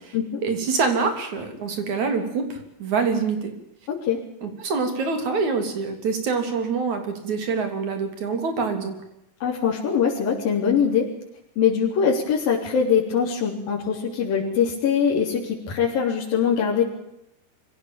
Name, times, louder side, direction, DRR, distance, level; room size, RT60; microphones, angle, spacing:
voice 1, 0.4-3.5 4.4-9.0, right 4 dB, 50° right, 7 dB, 4.3 m, -25 dB
voice 2, 9.4-11.1 11.6-16.8, left 7 dB, 60° left, -6 dB, 5.3 m, -22 dB
24.0 x 16.5 x 9.1 m, 0.84 s
omnidirectional pair, 4.7 m